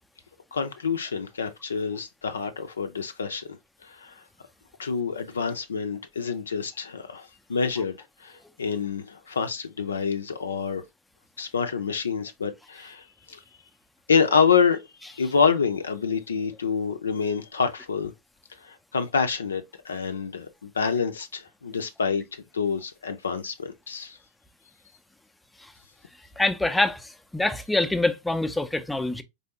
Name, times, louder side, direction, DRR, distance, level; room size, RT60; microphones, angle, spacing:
voice 1, 0.5-3.6 3.8-4.1 4.8-8.0 8.2-10.8 11.4-13.4 14.1-14.8 15.1-18.1 18.6-22.2 22.5-24.2, left 6 dB, 70° left, 0.5 m, -27 dB
voice 2, 26.4-29.2, left 2 dB, 5° left, 0.5 m, -25 dB
4.1 x 3.4 x 2.8 m
figure-of-eight pair, 90°, 0 cm